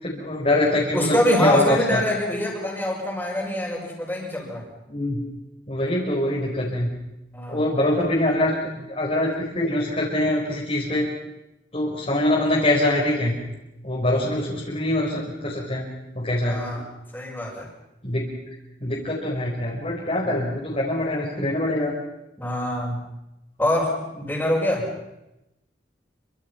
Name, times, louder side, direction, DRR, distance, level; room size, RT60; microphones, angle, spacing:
voice 1, 0.0-2.0 4.9-5.2 5.7-6.9 7.5-8.5 8.9-11.1 11.7-13.3 13.8-15.8 16.1-16.6 18.0-18.3 18.8-21.9, left 1 dB, 35° left, -5 dB, 4.8 m, -24 dB
voice 2, 0.9-4.6 7.3-7.6 16.4-16.8 17.1-17.7 20.2-20.5 22.4-23.0 23.6-24.9, left 1 dB, 10° left, -8 dB, 6.0 m, -25 dB
28.0 x 25.0 x 5.9 m, 0.94 s
head